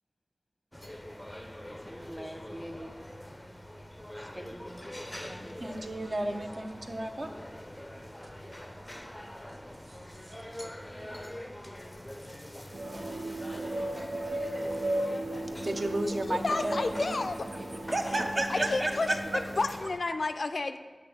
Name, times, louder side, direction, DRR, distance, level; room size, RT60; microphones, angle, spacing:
sound 1, 0.7-20.0, left 1 dB, 15° left, 0.5 m, -44 dB
voice 1, 1.8-2.9 4.2-4.8 5.1-5.6 10.4-10.5 18.1-19.4, equal, 10° right, 4 dB, 0.9 m, -39 dB
voice 2, 5.6-7.3 9.9-10.0 10.3-10.4 15.6-17.2 17.9-18.7, right 1 dB, 55° right, 4 dB, 0.6 m, -33 dB
sound 2, 12.7-19.7, right 1 dB, 80° right, 0.9 m, -35 dB
voice 3, 16.3-17.4 18.5-19.1 19.3-20.8, left 3 dB, 75° left, 8 dB, 0.3 m, -30 dB
8.1 x 3.4 x 6.1 m, 1.5 s
wide cardioid pair, 60°, 0 cm